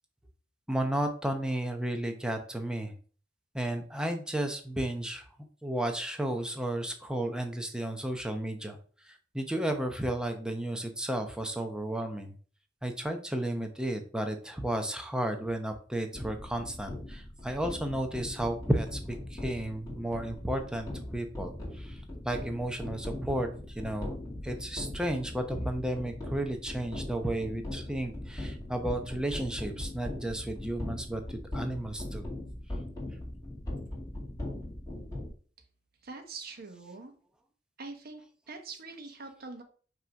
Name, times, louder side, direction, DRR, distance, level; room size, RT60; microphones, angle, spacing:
voice 1, 0.7-2.9 3.5-5.2 5.6-8.8 9.0-12.4 12.8-23.5 23.8-24.2 24.4-32.3, right 1 dB, 5° right, 5 dB, 0.8 m, -33 dB
sound 1, 16.1-35.3, left 1 dB, 20° left, 2.3 m, -40 dB
voice 2, 36.0-37.1 37.8-39.6, right 3 dB, 55° right, 5 dB, 1.1 m, -44 dB
5.9 x 3.1 x 5.2 m, 0.42 s
head